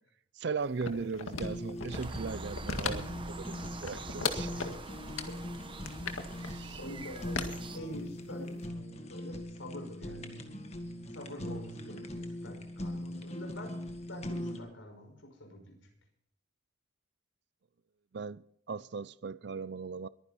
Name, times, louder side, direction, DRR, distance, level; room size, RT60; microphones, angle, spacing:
voice 1, 0.4-3.1 3.4-4.5 6.3-6.8 18.1-18.4 18.7-20.1, right 5 dB, 55° right, 0.5 m, -38 dB
sound 1, 0.8-2.1 2.5-3.2 3.5-4.8 5.2-5.3 5.8-6.5 7.3-8.3 8.6-8.7, left 5 dB, 90° left, 1.9 m, -36 dB
Fire, 1.3-14.6, left 1 dB, 30° left, 1.8 m, -41 dB
sound 2, 1.9-7.8, right 2 dB, 25° right, 1.0 m, -44 dB
voice 2, 6.8-8.7 9.1-10.3 11.1-13.8 14.1-15.9, left 1 dB, 70° left, 5.7 m, -46 dB
22.5 x 10.0 x 4.3 m
head